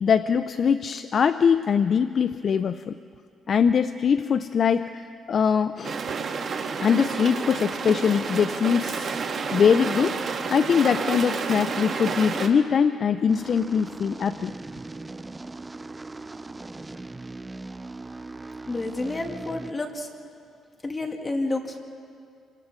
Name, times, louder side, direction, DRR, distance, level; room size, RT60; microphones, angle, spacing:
voice 1, 0.0-3.0 3.5-6.0 6.8-9.2 9.5-10.2 10.5-14.5, left 7 dB, 50° left, 11 dB, 0.5 m, -22 dB
sound 1, 5.8-12.5, right 5 dB, 50° right, 1.8 m, -30 dB
sound 2, 13.3-19.7, right 2 dB, 20° right, 0.6 m, -39 dB
voice 2, 18.7-20.1 20.8-21.8, left 2 dB, 25° left, 2 dB, 2.4 m, -29 dB
28.0 x 24.5 x 3.7 m, 2.3 s
cardioid pair, 90°, 0 cm